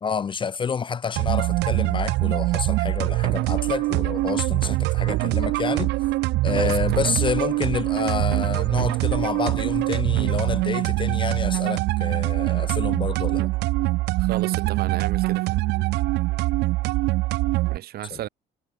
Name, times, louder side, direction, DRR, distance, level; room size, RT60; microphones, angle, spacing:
voice 1, 0.0-5.9 6.4-13.5 18.1-18.2, left 6 dB, 30° left, 0.6 m, -28 dB
sound 1, 1.2-17.8, right 20 dB, 85° right, 0.9 m, -23 dB
voice 2, 14.2-15.6 17.7-18.3, right 13 dB, 65° right, 3.1 m, -33 dB
cardioid pair, 110°, 17 cm